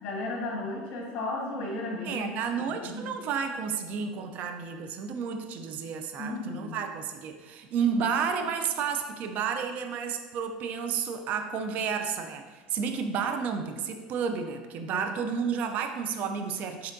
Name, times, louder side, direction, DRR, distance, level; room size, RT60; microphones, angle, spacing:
voice 1, 0.0-2.3 2.6-3.1 6.2-6.8 14.9-15.1, left 2 dB, 60° left, -2 dB, 1.4 m, -34 dB
voice 2, 2.0-16.9, right 6 dB, 55° right, 6 dB, 0.4 m, -31 dB
4.3 x 3.7 x 2.6 m, 1.3 s
supercardioid pair, 115°, 3 cm